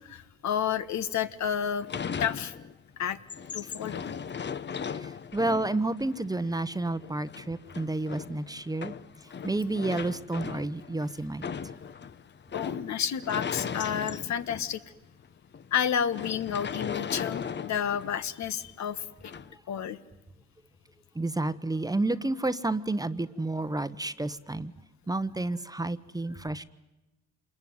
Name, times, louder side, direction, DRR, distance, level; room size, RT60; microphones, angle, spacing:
voice 1, 0.0-1.9 2.2-2.6 3.0-3.2 3.5-4.0 12.5-14.8 15.7-19.3 19.7-20.0, left 8 dB, 65° left, 12 dB, 1.5 m, -30 dB
sound 1, 1.8-2.9 3.2-14.8 15.2-15.3 15.5-15.7 16.1-18.3 19.2-19.5, left 7 dB, 35° left, 1.0 m, -38 dB
voice 2, 5.0-8.9 9.4-11.4 21.1-24.7 25.1-26.6, right 2 dB, 10° right, 14 dB, 1.0 m, -30 dB
27.0 x 21.5 x 9.5 m, 1.0 s
cardioid pair, 90°, 30 cm